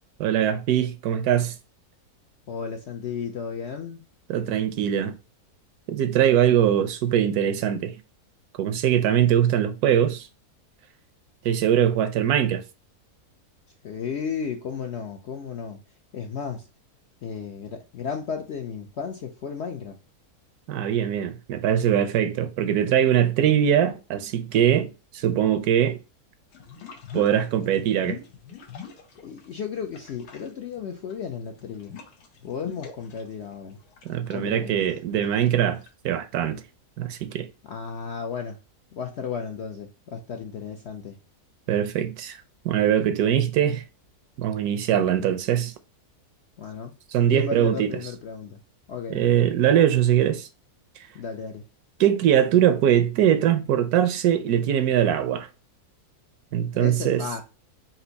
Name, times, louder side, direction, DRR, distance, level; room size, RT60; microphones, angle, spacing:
voice 1, 0.2-1.5 4.3-5.2 5.9-7.9 8.6-10.3 11.4-12.6 20.7-26.0 27.1-28.2 34.0-36.6 37.0-37.5 41.7-42.4 42.6-43.8 44.4-45.7 47.1-48.0 49.1-50.5 52.0-55.5 56.5-57.3, right 10 dB, 75° right, 1.1 m, -22 dB
voice 2, 2.5-4.0 13.8-15.8 16.1-16.7 17.2-20.0 29.2-31.9 32.4-33.8 34.3-34.7 37.7-38.6 38.9-41.1 46.6-46.9 47.3-48.6 48.9-49.2 51.1-51.6 56.7-57.4, left 6 dB, 65° left, 0.6 m, -34 dB
sound 1, 26.5-29.6 29.9-35.9, left 8 dB, 90° left, 1.5 m, -43 dB
4.3 x 2.6 x 3.9 m
omnidirectional pair, 1.6 m